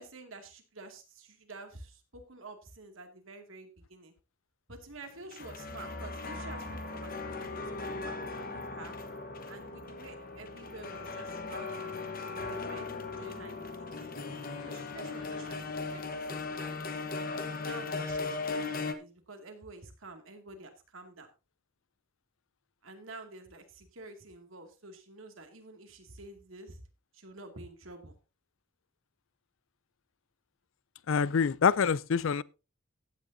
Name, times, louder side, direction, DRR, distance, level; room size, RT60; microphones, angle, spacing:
voice 1, 0.0-4.1 4.7-8.9 9.5-13.7 14.0-14.1 14.6-15.6 15.9-16.8 17.3-21.3 22.8-26.8 27.1-28.2, right 2 dB, 75° right, 2.4 m, -49 dB
sound 1, 5.0-18.9, left 3 dB, 45° left, 1.2 m, -38 dB
voice 2, 31.1-32.4, left 6 dB, 70° left, 0.4 m, -26 dB
15.0 x 9.5 x 2.7 m
head